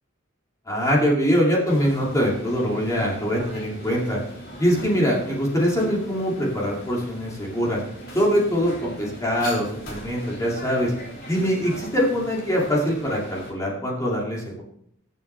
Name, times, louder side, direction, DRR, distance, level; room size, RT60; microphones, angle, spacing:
voice 1, 0.7-4.2 4.6-7.8 8.1-10.9 11.3-14.6, equal, 15° left, -4 dB, 2.4 m, -23 dB
sound 1, 1.7-13.5, right 1 dB, 45° left, 3.1 m, -40 dB
21.5 x 7.3 x 3.3 m, 0.72 s
head